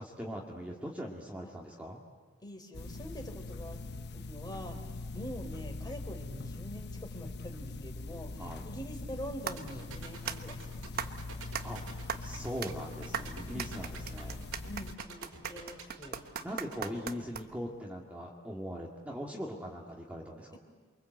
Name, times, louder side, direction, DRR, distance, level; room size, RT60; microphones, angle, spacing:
voice 1, 0.0-2.0 8.4-8.6 11.6-11.9 12.2-14.4 16.4-20.6, equal, 5° right, -2 dB, 2.3 m, -41 dB
voice 2, 2.4-3.8 4.1-11.2 13.5-13.7 14.7-16.2 16.8-17.3 20.5-20.6, equal, 20° left, 4 dB, 3.8 m, -45 dB
sound 1, 2.7-15.0, left 2 dB, 55° left, 1.0 m, -42 dB
sound 2, 9.5-17.8, right 7 dB, 45° right, 1.2 m, -41 dB
sound 3, 9.6-16.9, right 4 dB, 90° right, 5.6 m, -47 dB
28.5 x 24.0 x 8.1 m, 1.5 s
head